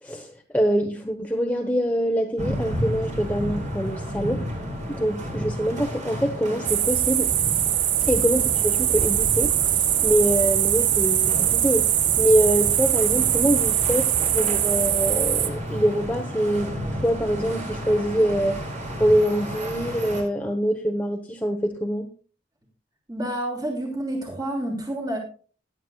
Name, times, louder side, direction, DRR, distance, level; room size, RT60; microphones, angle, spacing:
voice 1, 0.0-4.4 4.9-7.3 8.0-11.9 12.2-16.7 17.0-18.6 19.0-22.1, equal, 10° left, 2 dB, 0.9 m, -24 dB
sound 1, 2.4-20.2, equal, 40° right, 4.0 m, -32 dB
sound 2, 6.7-15.5, right 11 dB, 75° right, 1.0 m, -22 dB
voice 2, 23.1-25.2, right 1 dB, 20° right, 0 dB, 3.0 m, -30 dB
17.5 x 11.0 x 2.3 m, 0.39 s
head